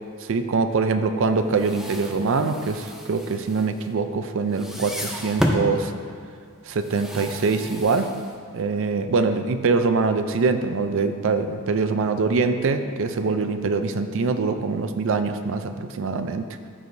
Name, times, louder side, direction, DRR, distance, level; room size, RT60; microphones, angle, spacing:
voice 1, 0.3-5.9 6.7-8.1 8.5-16.5, right 4 dB, 60° right, 9 dB, 0.4 m, -23 dB
sound 1, 1.4-4.2 4.5-5.7 6.7-8.6, equal, ahead, 0.5 m, -31 dB
14.0 x 4.8 x 2.6 m, 2.2 s
head